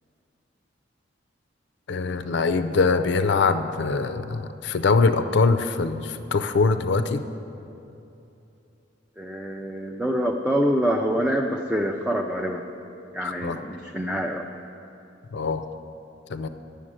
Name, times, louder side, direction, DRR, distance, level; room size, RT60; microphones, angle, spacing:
voice 1, 1.9-7.2 13.2-13.6 15.3-15.6 16.3-16.5, left 4 dB, 65° left, 10 dB, 0.5 m, -23 dB
voice 2, 9.2-12.7 13.1-14.5, equal, 5° right, 1 dB, 0.4 m, -26 dB
11.0 x 7.0 x 7.5 m, 2.8 s
head